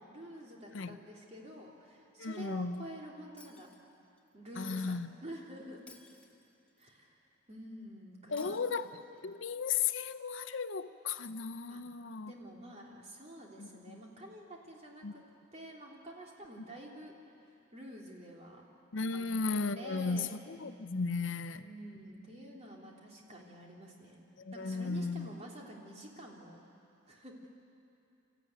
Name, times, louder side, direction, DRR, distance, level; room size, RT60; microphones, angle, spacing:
voice 1, 0.0-3.7 4.3-6.0 6.8-7.2 7.5-8.6 9.1-9.2 11.7-11.8 12.3-15.2 15.5-17.1 17.4-18.6 19.1-19.3 19.7-20.3 21.5-24.2 24.5-26.6 27.1-27.5, right 1 dB, 35° right, 3.2 m, -49 dB
voice 2, 2.2-2.9 4.6-5.1 8.3-8.9 9.2-12.3 13.6-14.0 15.0-15.1 18.9-21.6 24.4-25.4, left 5 dB, 75° left, 0.7 m, -35 dB
Shatter, 3.4-4.3 5.9-6.9 8.4-9.4, left 3 dB, 5° left, 1.8 m, -59 dB
26.5 x 14.0 x 9.4 m
head